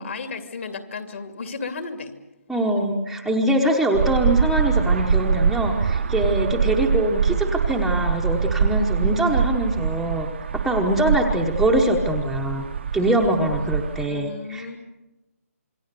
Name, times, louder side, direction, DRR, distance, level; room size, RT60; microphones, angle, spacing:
voice 1, 0.0-2.1 13.0-13.3 13.6-13.7 14.1-14.8, left 4 dB, 50° left, 6 dB, 2.6 m, -34 dB
voice 2, 2.5-10.3 10.6-12.6 12.9-14.8, right 1 dB, ahead, -2 dB, 1.0 m, -23 dB
sound 1, 3.9-14.1, right 6 dB, 45° right, 0.9 m, -24 dB
27.5 x 22.5 x 6.8 m, 1.0 s
hypercardioid pair, 165°, 8 cm